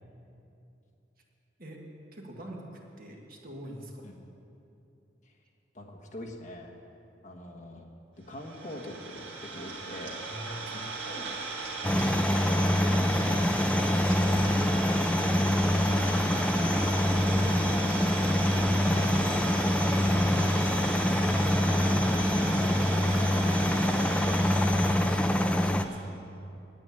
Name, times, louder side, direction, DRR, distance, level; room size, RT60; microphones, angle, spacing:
voice 1, 2.1-4.1 10.3-11.1 21.1-24.2 24.5-26.2, equal, 50° right, -1 dB, 1.7 m, -44 dB
voice 2, 5.7-6.7 7.2-7.8 8.3-10.2 10.7-11.4 11.8-14.8 15.2-15.8 17.2-17.9 18.5-19.1 19.6-20.8, left 1 dB, 45° left, 0 dB, 1.3 m, -44 dB
Idling, 8.3-26.1, right 4 dB, 80° right, 2.1 m, -37 dB
sound 1, 11.8-25.8, left 1 dB, 5° left, 0.4 m, -25 dB
9.1 x 8.6 x 9.7 m, 2.7 s
head